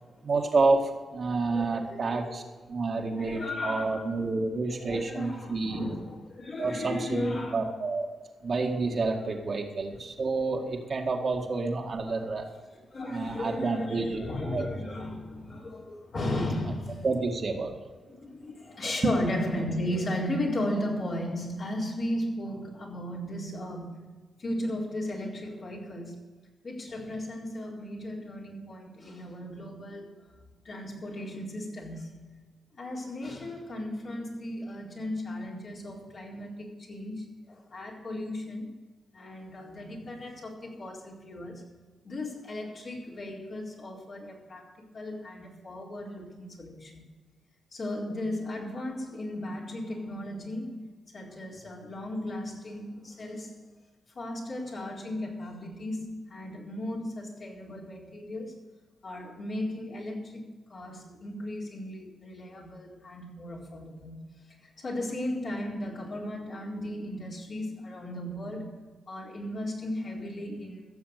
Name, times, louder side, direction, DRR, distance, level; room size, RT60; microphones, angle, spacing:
voice 1, 0.2-2.4 2.7-5.9 6.6-8.1 8.4-12.5 13.0-14.9 17.0-17.8, right 3 dB, 55° right, 1 dB, 2.1 m, -29 dB
voice 2, 1.5-2.4 3.0-4.3 4.7-7.6 8.9-9.1 9.5-9.6 9.8-10.0 12.1-12.3 12.7-17.1 18.0-24.1 24.4-26.2 26.6-30.2 30.6-32.3 32.8-38.7 39.1-41.6 42.0-44.6 44.9-47.0 47.7-53.6 54.2-58.6 59.0-64.4 64.8-68.8 69.1-70.8, left 1 dB, 60° left, -3 dB, 4.2 m, -36 dB
15.0 x 7.1 x 6.7 m, 1.3 s
supercardioid pair, 50°, 0 cm